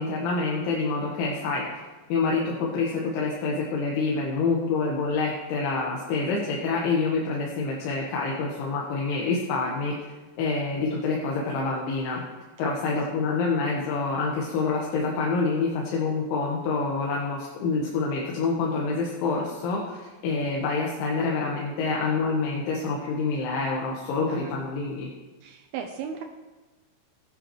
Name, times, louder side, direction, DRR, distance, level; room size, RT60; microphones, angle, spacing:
voice 1, 0.0-1.7 2.1-9.9 10.4-12.2 12.6-25.1, left 4 dB, 85° left, -3 dB, 3.7 m, -27 dB
voice 2, 24.3-24.6 25.4-26.2, right 7 dB, 90° right, 3 dB, 2.2 m, -37 dB
19.5 x 10.0 x 3.1 m, 1.2 s
omnidirectional pair, 5.4 m